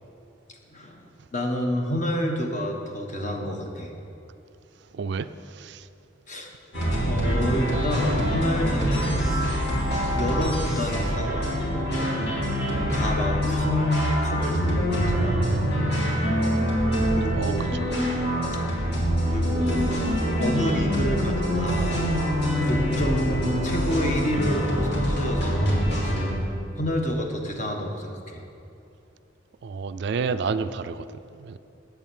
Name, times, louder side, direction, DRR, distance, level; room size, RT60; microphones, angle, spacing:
voice 1, 0.7-3.9 6.3-6.5 7.1-9.2 10.1-11.4 12.9-15.4 17.1-17.9 19.2-19.9 20.4-22.0 22.6-26.2 26.8-28.4, equal, 40° left, 2 dB, 1.3 m, -29 dB
voice 2, 4.9-5.9 17.3-17.5 29.6-31.6, right 5 dB, 60° right, 12 dB, 0.3 m, -30 dB
sound 1, 6.7-26.3, equal, 60° left, 2.5 m, -25 dB
8.0 x 7.3 x 8.5 m, 2.7 s
head